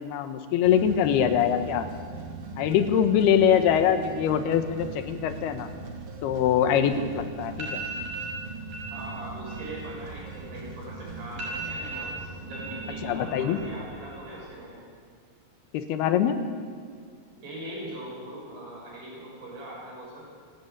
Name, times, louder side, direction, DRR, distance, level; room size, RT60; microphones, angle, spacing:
voice 1, 0.0-1.9 2.6-5.7 6.2-7.8 13.0-13.6 15.7-16.4, left 9 dB, 80° left, 8 dB, 3.2 m, -23 dB
sound 1, 0.6-13.8, right 4 dB, 45° right, 2.3 m, -40 dB
sound 2, 7.6-8.4 8.7-9.0 9.4-10.8 11.1-11.2 11.4-12.8 13.1-13.7 14.0-14.6, right 2 dB, 60° right, 6.8 m, -37 dB
voice 2, 8.9-14.9 17.4-20.2, right 1 dB, 85° right, -5 dB, 8.5 m, -41 dB
27.0 x 12.5 x 8.6 m, 2.1 s
omnidirectional pair, 4.6 m